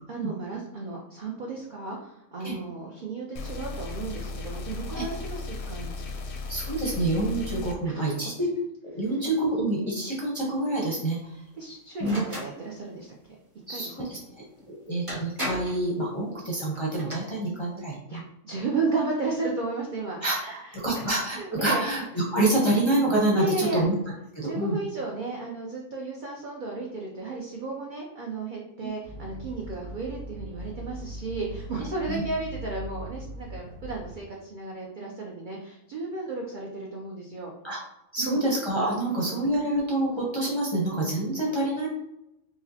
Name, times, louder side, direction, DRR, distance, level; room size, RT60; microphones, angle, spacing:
voice 1, 0.1-6.2 7.8-8.3 11.6-13.2 13.7-13.9 17.0-17.1 18.1-21.0 21.4-21.8 23.4-23.8 24.4-37.5 38.2-38.4 39.0-39.3, right 3 dB, 60° right, -2 dB, 0.5 m, -34 dB
sound 1, 3.4-7.8, left 3 dB, 65° left, 0.7 m, -36 dB
voice 2, 6.5-8.5 8.9-11.3 12.0-12.2 13.7-14.2 14.7-18.2 20.2-23.9 24.3-24.8 28.8-28.9 32.1-32.2 37.6-37.8 38.1-41.9, right 1 dB, 30° left, -5 dB, 0.5 m, -27 dB
sound 2, 12.0-12.5 14.6-14.7 15.1-15.8 16.8-17.1, equal, 25° right, 1.0 m, -34 dB
sound 3, 29.0-34.2, right 1 dB, 80° right, 1.1 m, -40 dB
4.8 x 2.1 x 2.7 m, 0.85 s
omnidirectional pair, 1.4 m